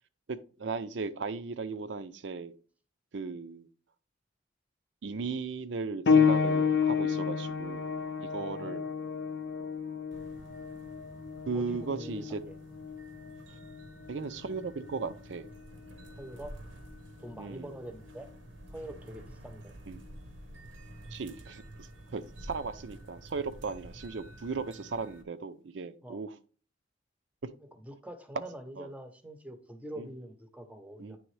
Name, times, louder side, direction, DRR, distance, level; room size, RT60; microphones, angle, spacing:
voice 1, 0.3-2.5 3.1-3.7 5.0-7.9 8.2-8.9 11.5-12.4 14.1-15.5 17.4-17.7 19.9-20.0 21.1-26.4 28.8-28.9 30.0-30.1 31.0-31.2, right 4 dB, 75° right, 12 dB, 0.5 m, -37 dB
sound 1, 6.1-16.3 17.2-17.4 18.1-18.2, left 6 dB, 65° left, 0.5 m, -31 dB
voice 2, 8.3-8.8 11.5-12.6 16.2-16.6 17.2-18.3 18.7-19.7 26.0-26.2 27.8-31.2, right 1 dB, 10° right, 8 dB, 0.7 m, -45 dB
sound 2, 10.1-25.2, right 1 dB, 90° right, 0.9 m, -50 dB
9.2 x 3.4 x 3.2 m, 0.40 s
head